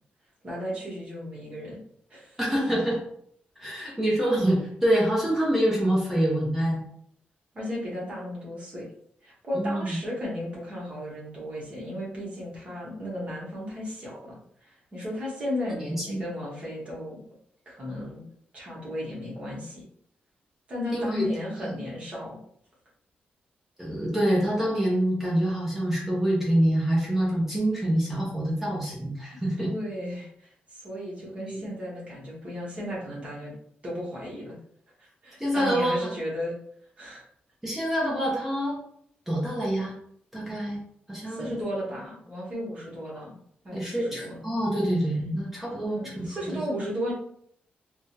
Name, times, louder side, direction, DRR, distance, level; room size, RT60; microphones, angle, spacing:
voice 1, 0.4-1.8 2.1-2.4 7.5-8.9 9.2-17.2 17.7-18.2 18.5-19.8 20.7-22.4 29.3-33.5 33.8-34.5 35.0-36.5 37.0-37.2 41.2-43.4 43.6-44.4 45.8-47.1, equal, 35° right, -5 dB, 1.2 m, -35 dB
voice 2, 2.4-3.0 3.6-6.8 9.5-10.0 15.9-16.2 20.9-21.3 23.8-29.7 31.5-31.6 35.4-36.1 37.6-38.8 39.3-40.0 40.3-40.8 41.1-41.6 43.7-46.4, right 1 dB, 10° right, -4 dB, 0.7 m, -26 dB
3.4 x 2.2 x 2.8 m, 0.67 s
wide cardioid pair, 170°, 4 cm